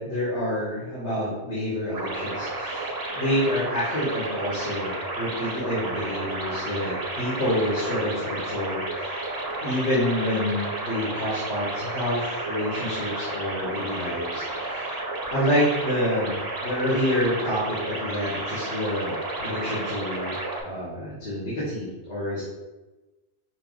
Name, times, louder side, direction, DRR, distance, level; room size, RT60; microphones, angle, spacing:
voice 1, 0.0-9.2 9.6-14.9 15.3-20.3 20.6-22.4, left 1 dB, 75° left, -8 dB, 1.6 m, -28 dB
sound 1, 1.9-20.6, right 2 dB, 30° right, 0.4 m, -32 dB
5.3 x 2.0 x 3.9 m, 1.1 s
omnidirectional pair, 1.2 m